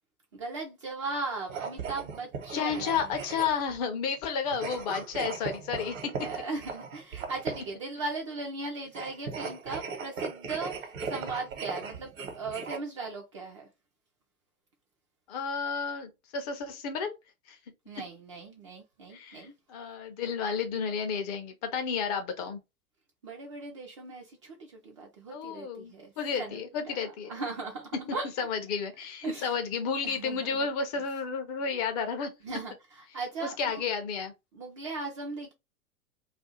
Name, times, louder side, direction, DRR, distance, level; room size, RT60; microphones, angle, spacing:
voice 1, 0.3-3.1 6.2-13.7 17.9-19.5 23.2-26.1 26.4-26.6 26.9-28.3 29.2-29.6 30.0-30.7 32.4-33.8 34.5-35.5, right 3 dB, 25° right, 0.3 m, -38 dB
sound 1, 1.4-3.8 4.5-7.8 8.9-12.8, right 5 dB, 65° right, 1.0 m, -38 dB
voice 2, 2.5-6.3 15.3-17.1 17.5-17.6 19.1-22.6 25.3-27.3 27.9-32.3 33.4-34.3, left 6 dB, 30° left, 0.5 m, -32 dB
2.5 x 2.3 x 4.0 m
figure-of-eight pair, 100°, 43 cm